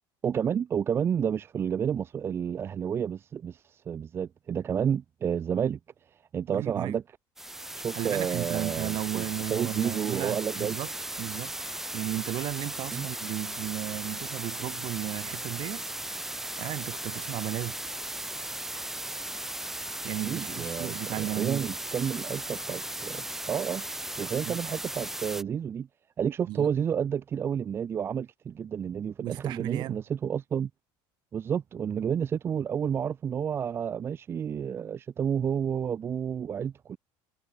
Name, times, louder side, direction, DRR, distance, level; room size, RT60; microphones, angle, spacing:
voice 1, 0.2-5.8 6.3-7.0 7.7-10.8 12.9-13.1 20.2-25.9 26.2-30.7 31.3-37.0, right 8 dB, 20° right, 1.5 m, -30 dB
voice 2, 6.5-7.0 7.9-10.9 11.2-11.5 11.9-15.8 16.1-17.8 20.0-21.7 24.4-24.6 26.5-26.8 29.2-30.0, right 16 dB, 45° right, 3.5 m, -34 dB
sound 1, 7.4-25.4, right 1 dB, 5° right, 1.3 m, -36 dB
cardioid pair, 180°, 11 cm